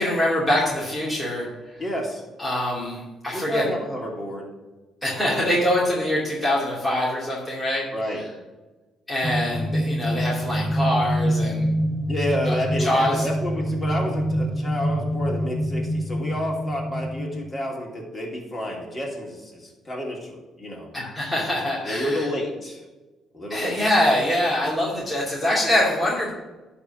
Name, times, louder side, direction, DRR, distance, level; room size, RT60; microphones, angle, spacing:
voice 1, 0.0-1.8 2.4-3.7 5.0-7.9 9.1-11.7 12.4-13.2 20.9-22.3 23.5-26.3, left 1 dB, 10° left, -7 dB, 2.5 m, -24 dB
voice 2, 1.8-2.2 3.3-4.5 5.3-5.7 7.9-8.3 12.1-20.9 21.8-22.8 23.3-23.8, equal, 30° left, -1 dB, 2.8 m, -30 dB
sound 1, 9.2-17.4, equal, 20° right, 1.2 m, -26 dB
11.0 x 3.7 x 7.3 m, 1.2 s
cardioid pair, 85°, 0 cm